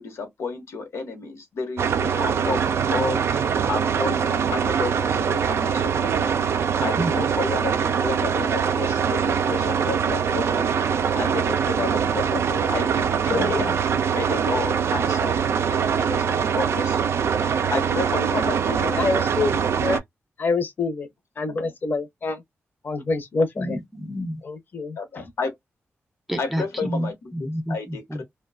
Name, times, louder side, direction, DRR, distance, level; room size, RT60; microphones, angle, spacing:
voice 1, 0.0-19.0 21.5-21.7 25.0-25.6 26.4-27.1 27.7-28.2, left 4 dB, 85° left, 0.9 m, -32 dB
sound 1, 1.8-20.0, right 7 dB, 65° right, 0.3 m, -23 dB
voice 2, 13.3-13.7 23.6-24.4 26.3-28.2, equal, 5° right, 0.4 m, -30 dB
voice 3, 18.8-20.0 20.4-21.1 21.4-22.4 22.8-23.8 24.4-25.0, left 3 dB, 45° left, 0.6 m, -26 dB
2.4 x 2.2 x 2.3 m
wide cardioid pair, 130°, 5 cm